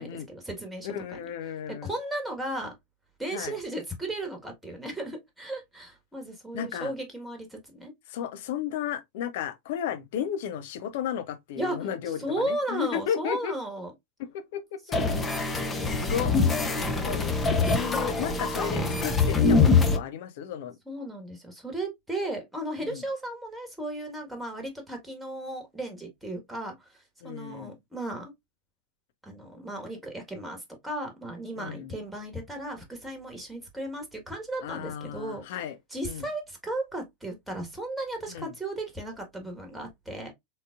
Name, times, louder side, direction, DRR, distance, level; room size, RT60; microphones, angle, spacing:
voice 1, 0.0-1.2 1.5-2.7 3.2-7.9 11.6-13.9 14.9-15.2 20.9-28.3 29.2-35.4 35.9-40.3, right 1 dB, 5° right, 1.4 m, -35 dB
voice 2, 0.8-1.9 3.3-3.6 6.5-6.9 8.1-13.5 14.3-14.8 16.0-16.3 17.0-17.2 17.6-20.7 22.8-23.0 27.2-27.8 31.6-31.9 34.6-35.8 36.1-36.3 38.3-38.5, left 9 dB, 50° left, 0.7 m, -33 dB
sound 1, 14.9-20.0, left 4 dB, 15° left, 0.8 m, -24 dB
3.9 x 3.8 x 2.4 m
figure-of-eight pair, 90°, 0 cm